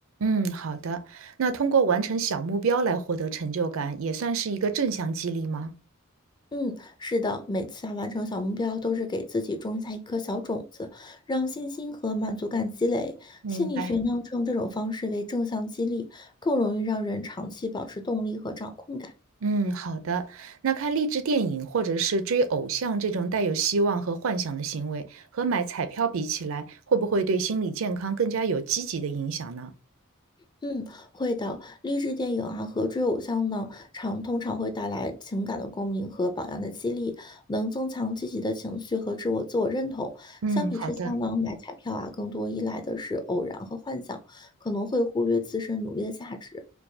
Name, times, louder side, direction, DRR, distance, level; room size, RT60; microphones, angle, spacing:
voice 1, 0.2-5.7 13.4-13.9 19.4-29.7 40.4-41.2, right 4 dB, 70° right, 0.5 m, -27 dB
voice 2, 6.5-19.1 30.6-46.6, left 2 dB, 20° left, 0.4 m, -30 dB
4.5 x 2.3 x 2.7 m
head